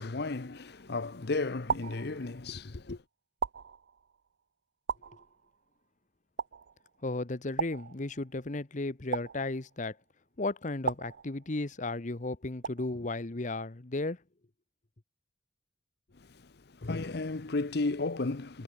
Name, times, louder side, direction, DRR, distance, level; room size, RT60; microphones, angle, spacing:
voice 1, 0.0-3.0 16.1-18.6, left 3 dB, 65° left, 0.9 m, -34 dB
sound 1, 0.5-1.0 1.7-2.6 3.4-4.3 4.9-5.7 6.4-7.0 7.6-8.5 9.1-10.0 10.9-11.8 12.6-13.2, right 6 dB, 80° right, 0.6 m, -38 dB
voice 2, 7.0-9.9 10.4-14.2, left 2 dB, 45° left, 1.1 m, -34 dB
head